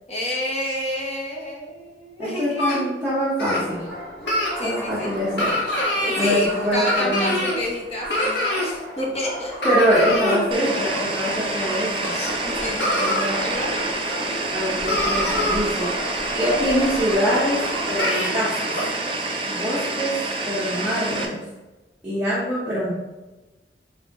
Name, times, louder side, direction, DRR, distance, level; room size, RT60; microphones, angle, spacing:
voice 1, 0.1-2.8 4.5-5.2 6.0-9.5 10.0-10.4 12.1-13.8, left 1 dB, 35° left, -2 dB, 0.9 m, -30 dB
voice 2, 2.2-3.8 4.6-5.5 6.2-7.4 9.6-12.1 13.0-13.4 14.5-15.9 16.3-17.6 17.9-18.7 19.5-20.2 20.5-21.4 22.0-22.9, equal, 10° right, -10 dB, 1.0 m, -24 dB
sound 1, 2.6-2.8 3.4-3.6 4.3-4.5 5.4-6.3 6.9-7.6 8.1-8.7 9.6-10.4 12.0-12.1 12.8-13.3 14.0-14.1 14.5-14.6 14.9-15.6 17.3-17.4 18.0-18.3 18.8-18.9, left 1 dB, 75° left, 1.3 m, -24 dB
sound 2, 3.4-18.0, right 1 dB, 5° left, 1.5 m, -34 dB
sound 3, 10.5-21.3, right 2 dB, 30° right, 0.5 m, -27 dB
4.6 x 3.7 x 2.9 m, 1.1 s
head